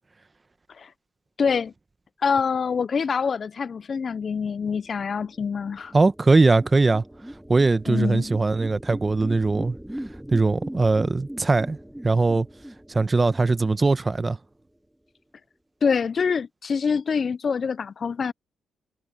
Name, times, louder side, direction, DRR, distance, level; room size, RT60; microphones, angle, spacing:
voice 1, 1.4-1.7 2.2-5.9 7.9-8.3 15.8-18.3, left 6 dB, 45° left, 0.3 m, -25 dB
sound 1, 4.8-14.5, right 1 dB, 5° right, 4.8 m, -40 dB
voice 2, 5.9-7.0 7.5-9.8 10.3-11.8 12.0-12.5 12.9-14.4, right 3 dB, 25° right, 1.0 m, -20 dB
cardioid pair, 90°, 0 cm